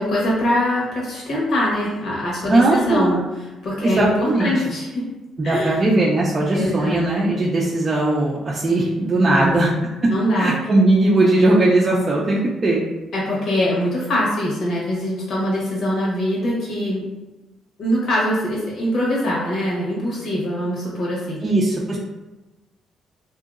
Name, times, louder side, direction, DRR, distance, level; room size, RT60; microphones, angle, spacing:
voice 1, 0.0-3.2 3.6-5.1 5.4-5.8 6.5-7.0 9.3-9.8 10.1-10.5 13.1-17.1 17.8-21.4, left 1 dB, 65° left, -5 dB, 1.2 m, -23 dB
voice 2, 2.5-3.2 3.8-4.5 5.4-9.7 10.0-10.1 10.4-12.8 21.4-22.0, right 2 dB, 35° right, -5 dB, 0.5 m, -18 dB
2.8 x 2.7 x 2.4 m, 1.1 s
cardioid pair, 85°, 0 cm